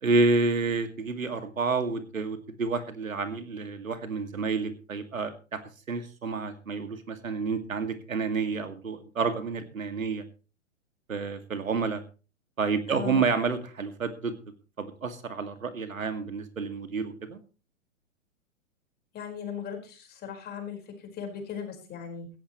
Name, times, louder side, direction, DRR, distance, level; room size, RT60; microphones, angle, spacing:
voice 1, 0.0-5.6 5.9-10.2 11.1-12.0 12.6-14.3 14.8-17.4, right 4 dB, 85° right, 9 dB, 2.2 m, -29 dB
voice 2, 12.9-13.2 19.1-22.3, left 7 dB, 25° left, 5 dB, 4.7 m, -38 dB
17.5 x 14.5 x 3.1 m, 0.33 s
hypercardioid pair, 115°, 40 cm